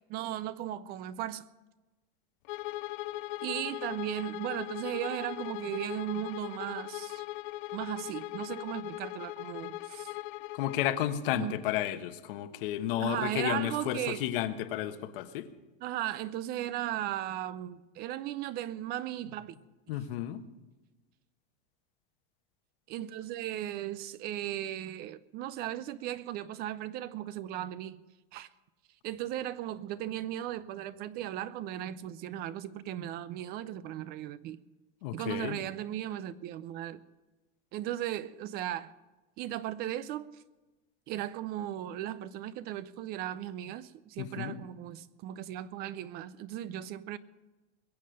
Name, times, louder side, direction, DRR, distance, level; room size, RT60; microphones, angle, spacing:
voice 1, 0.1-1.5 3.4-7.2 7.7-10.1 11.3-11.6 13.0-14.2 15.8-19.6 22.9-28.0 28.3-28.5 29.0-34.6 35.1-37.0 37.7-38.9 39.4-40.4 41.1-47.2, right 12 dB, 35° right, 0.4 m, -36 dB
Bowed string instrument, 2.4-11.0, left 18 dB, 55° left, 0.5 m, -39 dB
voice 2, 10.5-15.5 19.9-20.4 35.0-35.6 44.2-44.6, left 12 dB, 70° left, 1.2 m, -32 dB
22.0 x 7.5 x 6.4 m
supercardioid pair, 155°, 29 cm